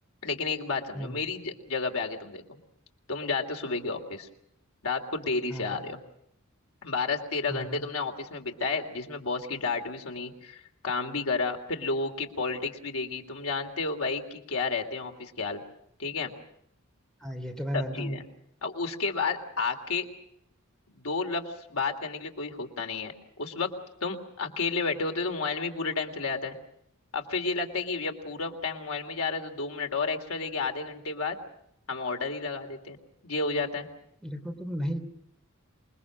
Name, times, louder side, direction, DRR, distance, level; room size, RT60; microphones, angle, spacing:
voice 1, 0.2-2.6 3.1-4.3 4.8-6.0 6.8-15.6 16.0-16.3 17.7-18.2 18.6-20.1 20.9-23.1 23.4-23.7 24.0-26.5 27.1-31.4 31.9-33.0 33.2-33.9, left 4 dB, 90° left, 4 dB, 3.1 m, -31 dB
voice 2, 7.5-7.8 17.2-18.2 34.2-35.0, equal, 5° left, 5 dB, 3.1 m, -34 dB
27.5 x 21.5 x 6.3 m, 0.74 s
head